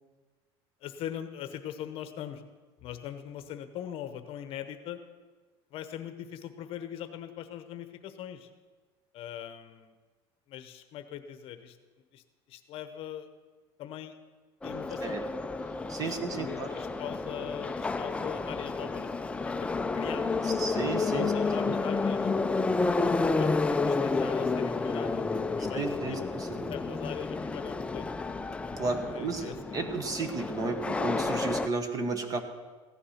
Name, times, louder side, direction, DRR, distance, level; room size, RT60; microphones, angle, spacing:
voice 1, 0.8-2.4 2.8-5.0 5.7-8.5 9.1-9.9 10.5-11.8 12.1-13.3 13.8-14.1 14.6-15.2 16.0-19.1 19.4-19.7 19.9-22.4 23.0-26.2 26.7-28.2 29.1-29.8, left 10 dB, 50° left, 9 dB, 1.0 m, -41 dB
Subway metro underground, 14.6-31.7, left 3 dB, 10° left, 0.4 m, -30 dB
voice 2, 15.9-16.7 20.4-21.3 21.6-21.7 25.7-26.7 28.8-32.4, right 3 dB, 30° right, 8 dB, 1.3 m, -33 dB
15.5 x 10.0 x 5.8 m, 1.3 s
cardioid pair, 145°, 12 cm